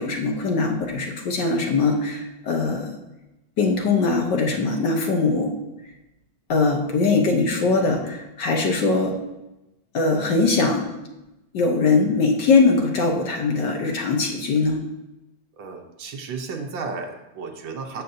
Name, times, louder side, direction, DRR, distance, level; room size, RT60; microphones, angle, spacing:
voice 1, 0.0-2.9 3.6-5.5 6.5-9.1 9.9-10.9 11.5-14.8, left 3 dB, 60° left, 1 dB, 1.5 m, -21 dB
voice 2, 15.6-18.0, right 4 dB, 70° right, 4 dB, 1.5 m, -33 dB
14.5 x 6.4 x 2.7 m, 0.96 s
omnidirectional pair, 2.3 m